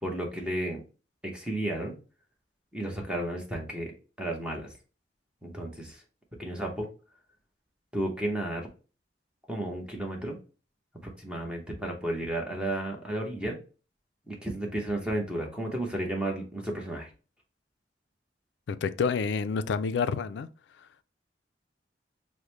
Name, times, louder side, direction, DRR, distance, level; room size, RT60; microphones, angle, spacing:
voice 1, 0.0-0.8 1.2-2.0 2.7-3.9 4.2-4.7 5.4-6.0 6.4-6.9 7.9-8.7 9.5-10.4 11.0-13.6 14.3-17.1, right 1 dB, 5° right, 0.8 m, -33 dB
voice 2, 18.7-20.5, left 5 dB, 70° left, 0.3 m, -28 dB
4.9 x 2.1 x 2.9 m
head